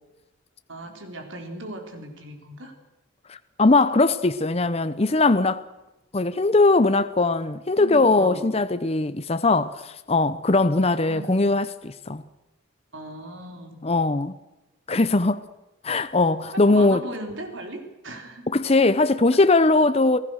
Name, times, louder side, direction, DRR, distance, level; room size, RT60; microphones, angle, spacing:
voice 1, 0.7-2.7 7.8-8.5 11.1-11.4 12.9-13.9 16.5-18.5 19.3-19.4, right 1 dB, 75° right, 4.1 m, -37 dB
voice 2, 3.3-5.6 6.1-12.2 13.8-14.3 14.9-15.4 15.8-17.0 18.5-20.2, left 3 dB, 30° left, 0.7 m, -20 dB
28.5 x 18.5 x 6.5 m
head